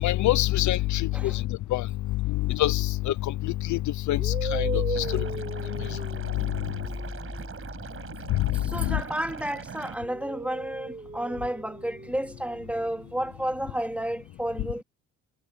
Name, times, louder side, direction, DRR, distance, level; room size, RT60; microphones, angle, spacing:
voice 1, 0.0-1.4 1.7-1.9 2.5-3.1 3.4-3.8 4.1-5.2 8.8-9.0, left 15 dB, 70° left, 0.7 m, -25 dB
sound 1, 3.0-3.3 4.1-9.4 9.8-13.8, right 4 dB, 25° right, 7.0 m, -39 dB
Liquid, 4.9-9.9, right 6 dB, 45° right, 5.3 m, -41 dB
sound 2, 6.4-10.0 10.4-10.5, left 2 dB, 15° left, 7.1 m, -42 dB
voice 2, 8.5-14.8, right 1 dB, 5° right, 2.5 m, -31 dB
cardioid pair, 90°, 30 cm